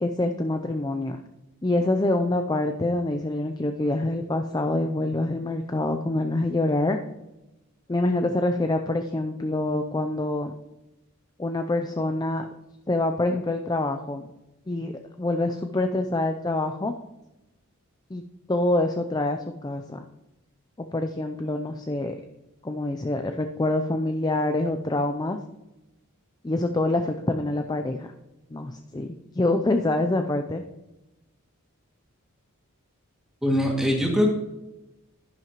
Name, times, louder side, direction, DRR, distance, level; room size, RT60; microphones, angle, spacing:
voice 1, 0.0-1.2 1.6-7.0 7.9-10.5 11.4-12.5 12.9-14.3 14.7-16.9 18.1-18.2 18.5-20.0 20.8-22.1 22.6-25.4 26.4-28.1 28.5-30.6, left 2 dB, 20° left, 6 dB, 0.4 m, -26 dB
voice 2, 33.4-34.3, left 1 dB, ahead, -2 dB, 2.2 m, -22 dB
10.5 x 10.5 x 3.0 m, 0.97 s
head